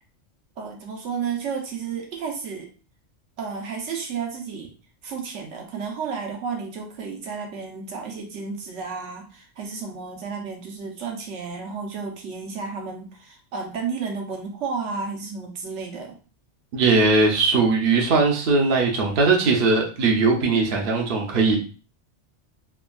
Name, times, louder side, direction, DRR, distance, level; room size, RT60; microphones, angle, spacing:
voice 1, 0.6-2.7 3.4-4.7 5.0-16.1, right 5 dB, 75° right, 2 dB, 1.0 m, -32 dB
voice 2, 16.7-21.6, right 3 dB, 55° right, -1 dB, 0.7 m, -19 dB
3.3 x 2.2 x 2.2 m, 0.37 s
omnidirectional pair, 1.2 m